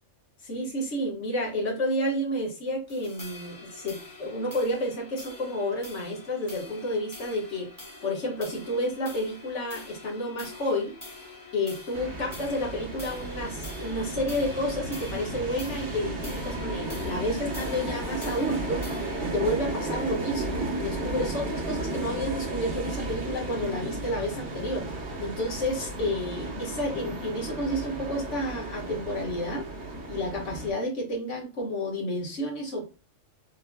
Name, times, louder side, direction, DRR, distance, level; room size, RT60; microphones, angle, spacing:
voice 1, 0.4-7.7 8.0-10.9 11.5-18.8 19.2-24.9 25.2-29.7 30.1-32.9, left 1 dB, 65° left, -1 dB, 1.8 m, -30 dB
sound 1, 2.9-21.5, left 3 dB, 15° left, 1.1 m, -45 dB
sound 2, 11.9-30.7, right 2 dB, 60° right, 1.4 m, -34 dB
6.4 x 3.2 x 2.3 m, 0.31 s
omnidirectional pair, 1.3 m